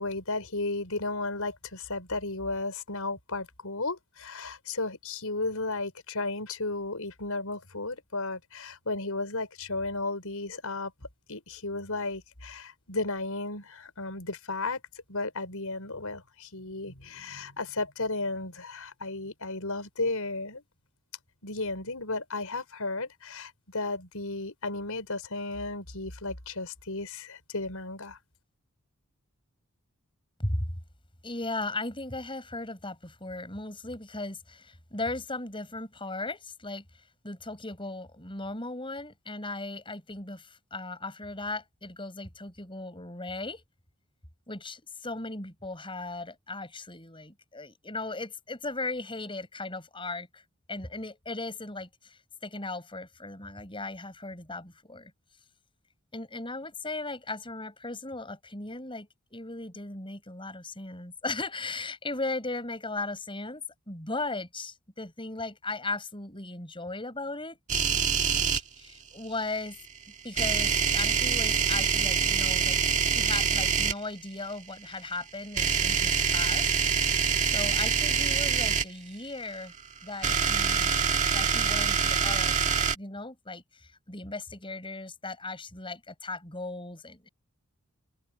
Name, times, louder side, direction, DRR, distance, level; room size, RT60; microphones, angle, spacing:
voice 1, 0.0-10.9 11.3-14.8 15.1-20.6 21.4-28.2, left 2 dB, 75° left, 5.5 m, -34 dB
voice 2, 31.2-36.8 37.2-43.6 44.5-55.1 56.1-67.6 68.8-69.8 70.2-72.8 73.1-76.8 77.5-79.7 80.0-87.3, left 2 dB, 25° left, 5.8 m, -37 dB
sound 1, 67.7-68.6 70.3-73.9 75.5-78.8 80.0-83.0, right 6 dB, 35° right, 1.9 m, -25 dB
open air
head